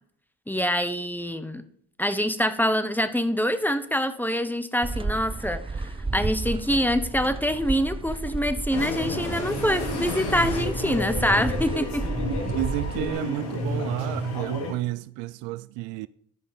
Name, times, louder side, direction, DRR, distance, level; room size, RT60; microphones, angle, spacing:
voice 1, 0.5-1.6 2.0-12.1, equal, 5° left, 1.1 m, -25 dB
sound 1, 4.8-13.1, right 3 dB, 15° right, 0.5 m, -33 dB
sound 2, 8.7-14.7, left 2 dB, 65° left, 2.7 m, -31 dB
voice 2, 12.5-16.1, right 16 dB, 80° right, 0.5 m, -31 dB
12.5 x 5.3 x 5.3 m
hypercardioid pair, 55°, 43 cm